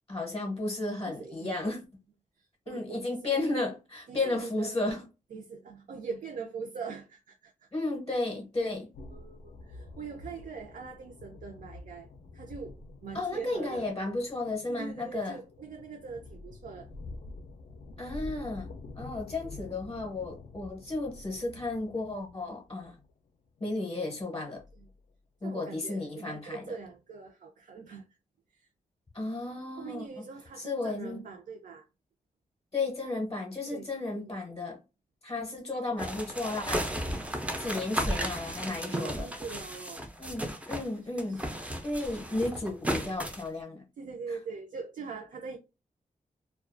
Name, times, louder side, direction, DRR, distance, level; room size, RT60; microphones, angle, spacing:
voice 1, 0.1-1.8 2.7-5.0 7.7-8.9 13.1-15.4 18.0-18.7 19.0-22.9 23.6-24.6 25.4-26.8 29.1-30.2 30.6-31.3 32.7-34.8 35.2-36.9 37.6-39.3 40.2-41.4 41.8-43.8, left 2 dB, 25° left, 0.7 m, -33 dB
voice 2, 1.1-1.6 2.4-3.4 4.1-4.9 5.3-7.7 9.1-12.1 12.3-13.9 14.7-16.9 19.4-19.6 24.7-24.9 25.4-28.0 28.5-28.7 29.8-31.9 33.7-33.9 34.2-34.4 37.3-37.7 38.9-40.0 41.1-41.6 44.0-45.6, right 5 dB, 70° right, 0.5 m, -42 dB
sound 1, 8.9-25.1, left 3 dB, 65° left, 0.4 m, -48 dB
sound 2, 36.0-40.9 41.2-43.5, equal, 10° right, 0.4 m, -34 dB
2.3 x 2.2 x 2.4 m
wide cardioid pair, 150°, 14 cm